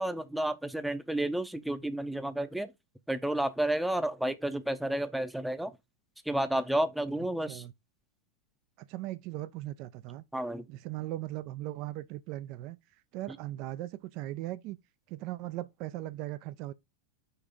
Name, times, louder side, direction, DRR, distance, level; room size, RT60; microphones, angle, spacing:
voice 1, 0.0-2.7 3.1-5.7 6.3-7.6 10.3-10.7, right 1 dB, 5° right, 0.7 m, -31 dB
voice 2, 8.8-10.2 10.7-12.8 13.1-14.8 15.1-16.7, right 16 dB, 45° right, 0.4 m, -38 dB
5.7 x 3.3 x 5.0 m
figure-of-eight pair, 90°, 0 cm